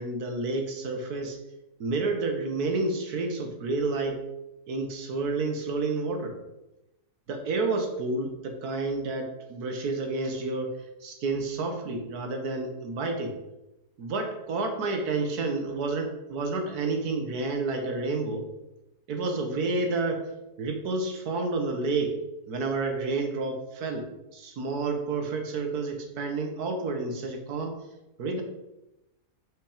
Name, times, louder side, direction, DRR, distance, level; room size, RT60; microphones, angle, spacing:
voice 1, 0.0-1.4 1.8-4.2 4.7-6.4 7.3-10.7 11.0-13.3 14.0-18.5 19.1-20.3 20.6-22.2 22.5-24.1 24.3-27.8 28.2-28.4, right 3 dB, 70° right, 4 dB, 1.7 m, -30 dB
5.9 x 5.7 x 5.0 m, 0.94 s
omnidirectional pair, 1.8 m